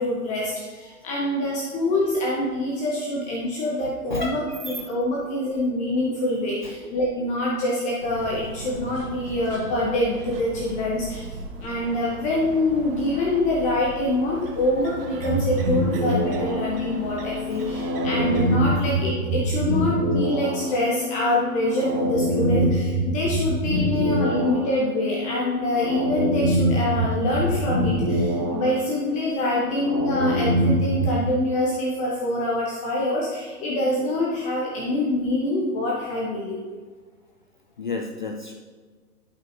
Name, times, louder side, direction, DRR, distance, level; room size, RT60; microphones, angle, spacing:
voice 1, 0.0-11.2 11.6-36.6, left 1 dB, 15° left, -4 dB, 0.8 m, -25 dB
voice 2, 3.8-4.9 5.1-5.2 6.6-6.9 17.5-17.6 24.3-24.4 37.8-38.5, left 3 dB, 35° left, 2 dB, 0.4 m, -33 dB
sound 1, 8.0-18.6, right 3 dB, 40° right, 0.9 m, -39 dB
sound 2, 15.2-31.2, equal, 20° right, 1.1 m, -25 dB
11.0 x 5.5 x 2.6 m, 1.5 s
hypercardioid pair, 135°, 45 cm